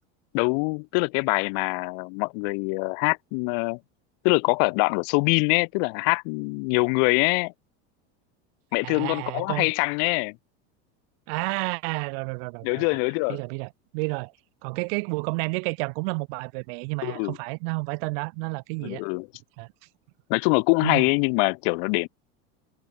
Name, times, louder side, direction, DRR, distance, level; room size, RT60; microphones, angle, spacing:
voice 1, 0.3-3.8 4.2-7.5 8.7-10.4 12.6-13.4 17.0-17.4 18.8-19.3 20.3-22.1, left 40 dB or more, 55° left, 1.6 m, -24 dB
voice 2, 8.8-9.7 11.3-13.0 13.3-14.3 14.6-19.0 19.6-19.7 20.8-21.0, right 34 dB, 60° right, 3.6 m, -30 dB
supercardioid pair, 150°, 32 cm